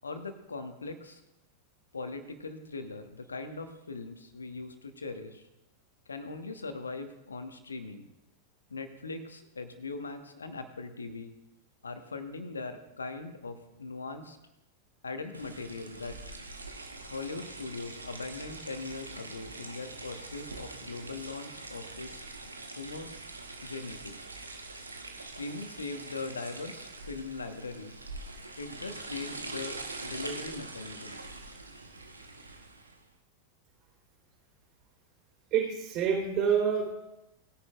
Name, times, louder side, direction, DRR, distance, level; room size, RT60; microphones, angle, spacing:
voice 1, 0.0-1.2 1.9-5.4 6.1-8.1 8.7-11.3 11.8-14.4 15.0-16.2 17.1-22.3 22.8-23.1 23.6-24.2 25.3-27.9 28.6-31.2, left 3 dB, 75° left, 8 dB, 1.3 m, -40 dB
sound 1, 15.3-33.0, right 2 dB, 80° right, 1.2 m, -44 dB
voice 2, 35.5-36.9, right 7 dB, 40° right, -1 dB, 4.1 m, -27 dB
20.0 x 10.5 x 2.5 m, 0.93 s
figure-of-eight pair, 90°, 0 cm